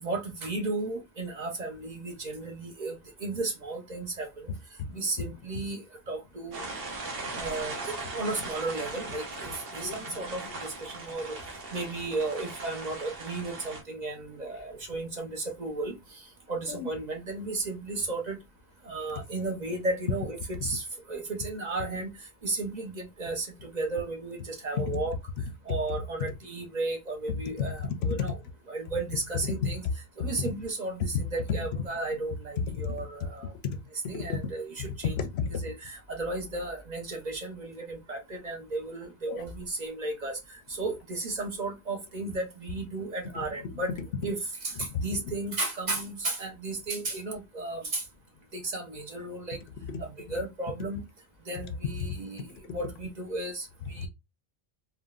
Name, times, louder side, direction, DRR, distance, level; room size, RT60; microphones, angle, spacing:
voice 1, 0.0-4.5 4.9-6.7 7.4-11.3 11.7-15.9 16.5-18.4 18.8-22.1 22.4-25.1 25.7-28.3 28.7-29.8 30.2-33.5 34.1-35.1 35.6-40.4 40.7-43.9 44.2-48.0 48.5-49.6 50.0-51.0 51.5-52.5 52.7-54.1, right 2 dB, 45° right, 0.8 m, -34 dB
voice 2, 4.8-5.6 7.0-7.4 9.7-10.0 10.5-10.6 16.7-16.9 20.6-20.7 24.8-24.9 25.7-25.8 27.6-28.3 29.5-29.9 30.2-30.3 31.1-31.2 31.5-31.6 32.6-33.0 33.6-33.8 34.0-34.5 35.1-35.6 39.3-39.4 43.5-44.0 44.8-45.3 49.9-50.0 52.1-52.2 52.6-52.8 54.0-54.1, left 6 dB, 80° left, 0.8 m, -33 dB
sound 1, 6.5-13.8, right 3 dB, 65° right, 1.0 m, -39 dB
3.7 x 2.2 x 2.3 m
omnidirectional pair, 1.1 m